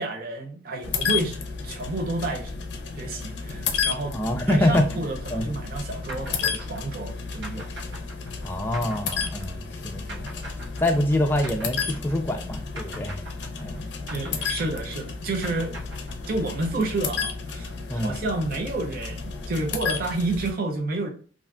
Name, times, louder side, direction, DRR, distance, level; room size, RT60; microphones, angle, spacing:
voice 1, 0.0-1.4 1.6-2.5 3.0-4.2 4.5-7.7 14.1-15.7 16.3-21.1, right 2 dB, 55° right, 0.5 m, -30 dB
sound 1, 0.8-20.5, left 5 dB, 65° left, 0.5 m, -32 dB
voice 2, 4.1-5.0 5.3-5.5 8.4-10.3 10.8-13.2 13.6-13.9 14.3-14.4 17.9-18.2, left 1 dB, 10° left, 0.4 m, -25 dB
sound 2, 6.1-12.5 12.8-16.6, right 2 dB, 80° right, 1.0 m, -42 dB
2.5 x 2.4 x 3.2 m
head